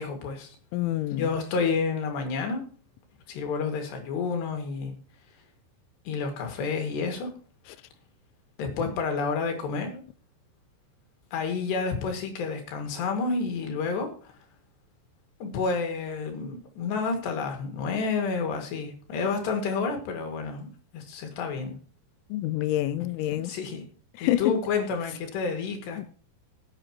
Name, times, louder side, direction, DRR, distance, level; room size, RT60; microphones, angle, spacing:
voice 1, 0.0-0.6 1.1-2.6 3.3-4.9 6.1-7.3 8.6-10.0 11.3-14.4 15.4-20.7 20.9-21.7 23.3-23.8 24.2-26.1, left 4 dB, 70° left, 4.1 m, -30 dB
voice 2, 0.7-1.3 22.3-23.5 24.2-24.5 26.0-26.1, left 14 dB, 90° left, 3.1 m, -27 dB
18.0 x 8.7 x 3.0 m
omnidirectional pair, 5.4 m